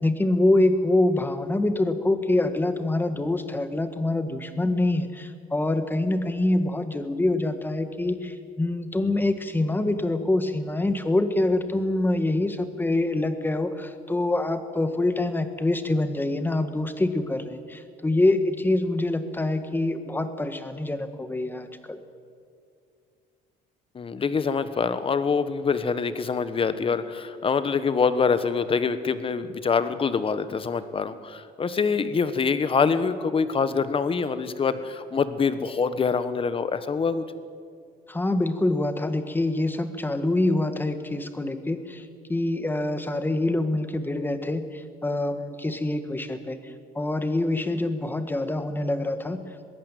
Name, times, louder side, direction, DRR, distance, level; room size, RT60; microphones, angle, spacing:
voice 1, 0.0-22.0 38.1-42.0 42.3-46.6 46.9-49.4, left 2 dB, 10° left, 9 dB, 1.8 m, -25 dB
voice 2, 23.9-37.2, left 5 dB, 30° left, 12 dB, 1.3 m, -25 dB
22.0 x 16.0 x 9.2 m, 2.2 s
cardioid pair, 110°, 17 cm